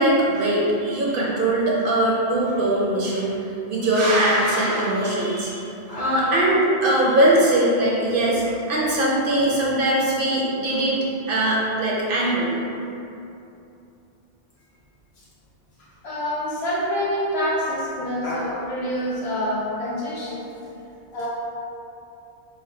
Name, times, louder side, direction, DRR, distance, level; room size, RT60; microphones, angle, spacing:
voice 1, 0.0-3.4 3.7-11.0 11.3-12.6, right 1 dB, 60° right, -4 dB, 0.9 m, -21 dB
voice 2, 5.9-6.5 16.0-20.5 21.1-21.3, equal, 75° left, -6 dB, 1.2 m, -27 dB
4.1 x 2.3 x 4.3 m, 2.8 s
omnidirectional pair, 1.1 m